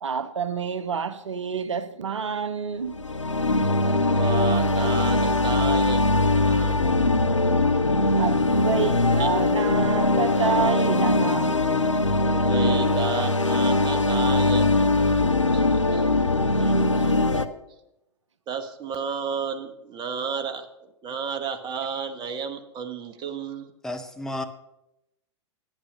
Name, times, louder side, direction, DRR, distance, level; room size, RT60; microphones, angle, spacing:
voice 1, 0.0-3.0 8.2-11.6 16.6-16.9, right 6 dB, 75° right, 0.7 m, -28 dB
sound 1, 2.9-17.5, left 2 dB, 90° left, 0.6 m, -21 dB
voice 2, 3.8-6.8 8.6-8.7 9.2-9.3 12.4-16.1 17.3-17.5 18.5-23.7, right 6 dB, 30° right, 1.2 m, -33 dB
voice 3, 23.8-24.4, left 1 dB, 5° left, 0.7 m, -32 dB
9.9 x 8.8 x 6.6 m
figure-of-eight pair, 100°, 15 cm